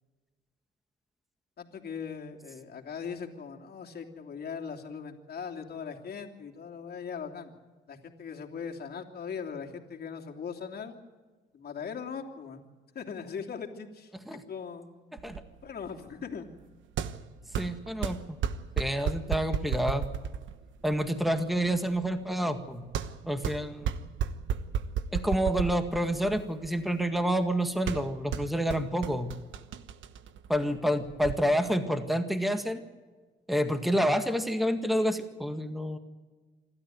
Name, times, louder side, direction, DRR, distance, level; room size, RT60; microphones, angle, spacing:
voice 1, 1.6-7.5 7.9-11.0 11.5-12.7 12.9-14.9 15.6-16.5 30.6-30.8, left 6 dB, 50° left, 2 dB, 3.1 m, -40 dB
sound 1, 15.2-31.4, right 8 dB, 75° right, 1.2 m, -35 dB
voice 2, 17.6-18.4 18.8-20.0 20.8-22.8 23.2-24.0 25.1-29.3 30.5-32.8 33.5-36.0, equal, ahead, 7 dB, 1.8 m, -28 dB
27.5 x 13.0 x 9.3 m, 1.4 s
cardioid pair, 90°, 20 cm